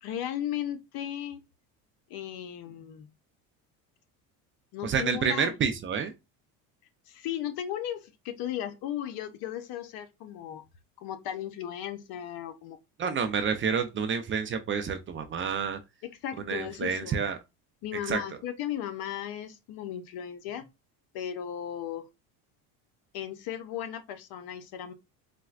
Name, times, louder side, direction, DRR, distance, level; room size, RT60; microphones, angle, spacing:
voice 1, 0.0-1.4 2.1-3.1 4.7-5.5 7.1-10.6 11.0-12.8 13.5-13.6 16.0-17.2 17.8-20.7 21.1-22.1 23.1-24.9, left 10 dB, 60° left, 0.7 m, -36 dB
voice 2, 4.8-6.1 13.0-15.8 16.4-17.4 18.1-18.2, right 6 dB, 30° right, 0.5 m, -29 dB
4.1 x 2.1 x 2.4 m
supercardioid pair, 100°, 42 cm